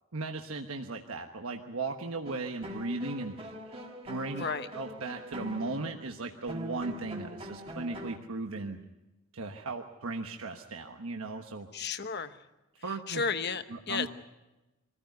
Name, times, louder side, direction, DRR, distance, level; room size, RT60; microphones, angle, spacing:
voice 1, 0.1-3.4 3.7-3.8 4.0-4.4 4.7-8.8 9.3-11.7 12.8-13.2 13.7-14.1, right 3 dB, 80° right, 4 dB, 1.2 m, -37 dB
sound 1, 2.2-8.2, equal, 25° right, 1.8 m, -43 dB
voice 2, 4.3-4.7 11.7-12.4 12.9-14.1, left 5 dB, 50° left, 10 dB, 1.1 m, -33 dB
24.5 x 15.0 x 9.4 m, 1.0 s
head